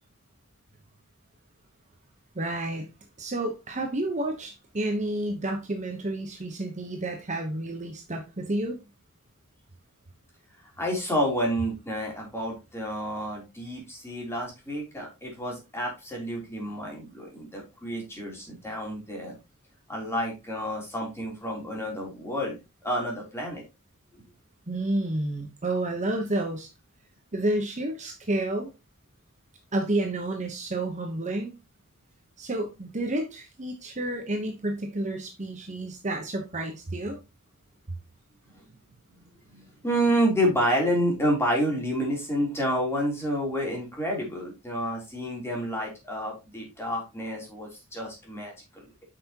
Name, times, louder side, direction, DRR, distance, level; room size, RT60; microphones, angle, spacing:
voice 1, 2.3-2.9 3.2-8.8 24.7-26.7 27.3-28.7 29.7-31.5 32.4-37.2, right 1 dB, 35° right, 1.0 m, -30 dB
voice 2, 10.8-19.4 19.9-22.6 22.8-23.6 38.5-38.6 39.5-48.8, equal, 10° left, 3.3 m, -29 dB
8.5 x 5.9 x 2.9 m
head